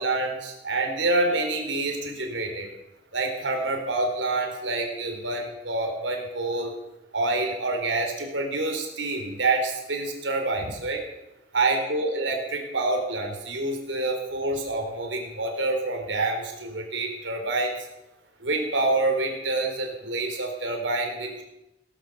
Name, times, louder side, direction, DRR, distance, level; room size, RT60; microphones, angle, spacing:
voice 1, 0.0-2.7 3.1-6.7 7.1-11.0 11.5-17.7 18.4-21.4, right 2 dB, 75° right, 2 dB, 3.9 m, -27 dB
18.0 x 11.0 x 6.9 m, 0.92 s
head